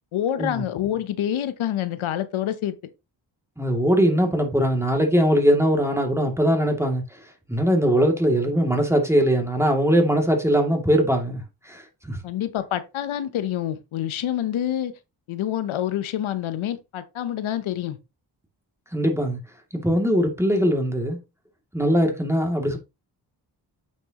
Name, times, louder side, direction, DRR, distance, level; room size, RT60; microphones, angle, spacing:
voice 1, 0.1-2.8 12.2-14.9 15.3-18.0, left 11 dB, 85° left, 0.9 m, -27 dB
voice 2, 3.6-7.0 7.5-11.4 11.7-12.2 18.9-19.4 19.7-21.2 21.7-22.8, equal, 5° right, 2.5 m, -21 dB
9.4 x 5.4 x 3.0 m
cardioid pair, 45°, 47 cm